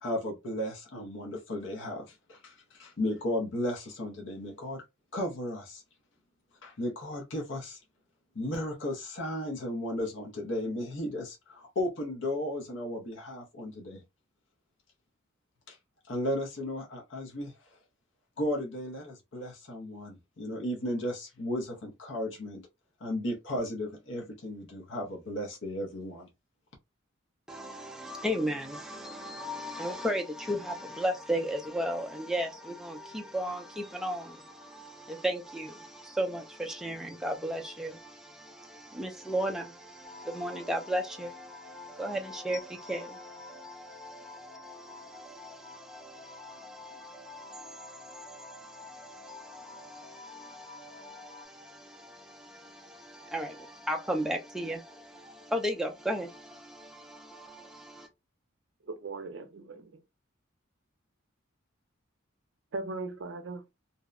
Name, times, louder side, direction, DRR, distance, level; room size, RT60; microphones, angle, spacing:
voice 1, 0.0-4.8 5.1-5.8 6.6-7.8 8.3-14.0 15.7-15.8 16.1-17.5 18.4-22.6 23.0-26.3, left 1 dB, 65° left, 0.6 m, -35 dB
voice 2, 27.5-58.1, equal, 5° right, 0.3 m, -36 dB
sound 1, 40.0-51.5, left 4 dB, 25° left, 0.8 m, -49 dB
voice 3, 58.8-60.0 62.7-63.6, right 3 dB, 65° right, 0.5 m, -38 dB
2.7 x 2.0 x 2.3 m
head